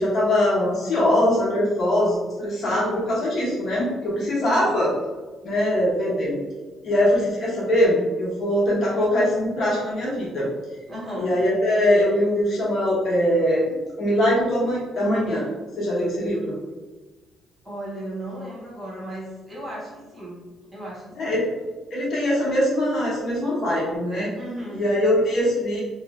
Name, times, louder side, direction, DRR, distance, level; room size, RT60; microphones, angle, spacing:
voice 1, 0.0-4.9 5.4-6.3 6.8-10.5 11.2-15.5 15.8-16.6 21.2-21.5 21.9-24.3 24.7-25.8, left 1 dB, 45° left, -6 dB, 1.0 m, -22 dB
voice 2, 2.7-3.1 4.4-4.7 10.9-11.4 17.6-20.4 20.7-21.4 24.4-24.9, right 1 dB, 10° right, -6 dB, 0.9 m, -35 dB
2.6 x 2.1 x 3.0 m, 1.3 s
cardioid pair, 155°, 0 cm